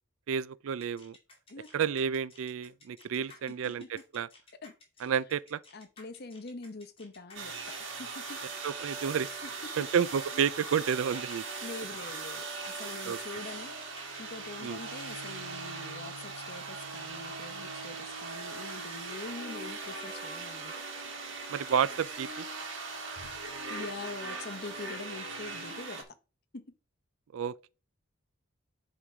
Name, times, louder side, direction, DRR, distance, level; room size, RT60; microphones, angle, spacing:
voice 1, 0.3-1.2 1.7-4.3 5.0-5.6 8.6-9.3 9.8-11.4 13.1-13.2 14.6-14.8 21.5-22.5 27.3-27.7, right 7 dB, 75° right, 0.4 m, -30 dB
sound 1, 0.8-15.1, left 3 dB, 25° left, 2.3 m, -56 dB
voice 2, 3.2-3.9 4.6-5.1 5.7-8.4 9.4-9.7 10.3-10.5 11.6-13.8 14.2-20.7 23.7-26.1 26.5-26.7, left 3 dB, 50° left, 0.9 m, -44 dB
sound 2, 7.3-26.0, right 4 dB, 60° right, 1.9 m, -40 dB
9.7 x 3.8 x 4.8 m
head